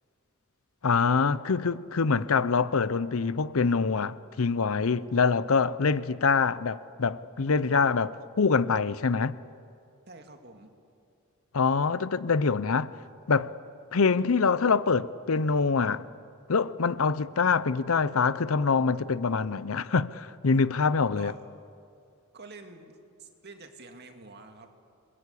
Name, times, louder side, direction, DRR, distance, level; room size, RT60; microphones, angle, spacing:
voice 1, 0.8-9.4 11.5-12.9 13.3-13.5 13.9-16.0 16.5-21.3, left 5 dB, 70° left, 0.7 m, -25 dB
voice 2, 10.1-10.7 21.2-21.4 22.3-22.9 23.2-24.7, right 3 dB, 50° right, 2.3 m, -47 dB
28.0 x 21.5 x 8.4 m
head